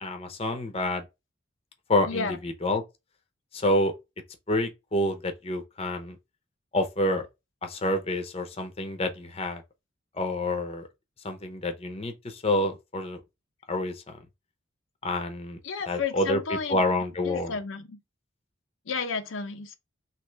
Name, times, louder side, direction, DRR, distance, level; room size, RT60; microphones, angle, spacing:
voice 1, 0.0-1.0 1.9-2.8 3.5-3.9 4.5-6.2 6.7-7.3 7.6-9.6 10.1-10.9 11.2-13.2 13.7-14.2 15.0-15.6 15.9-16.4 16.7-17.5, left 1 dB, 30° left, 0.7 m, -28 dB
voice 2, 2.0-2.4 15.6-16.8 17.2-18.0 18.9-19.7, left 5 dB, 85° left, 0.6 m, -32 dB
3.2 x 3.0 x 4.4 m
head